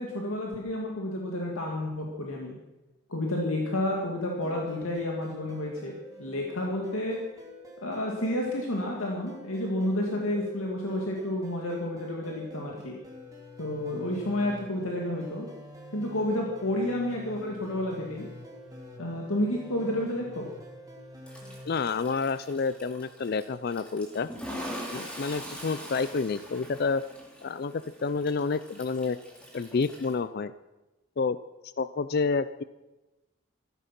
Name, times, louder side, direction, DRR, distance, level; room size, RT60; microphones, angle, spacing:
voice 1, 0.0-2.6 3.1-5.9 6.2-7.2 7.8-13.0 13.6-15.5 15.9-18.3 19.0-20.5, left 1 dB, 85° left, -1 dB, 2.3 m, -30 dB
sound 1, 4.4-21.7, equal, 15° right, 2.9 m, -47 dB
Toilet flush, 21.3-30.1, equal, 5° left, 2.8 m, -43 dB
voice 2, 21.7-24.3 24.9-27.0 27.4-29.2 29.5-30.5 31.2-31.4 31.6-32.6, left 4 dB, 45° left, 15 dB, 0.4 m, -29 dB
15.0 x 14.0 x 6.0 m, 1.1 s
head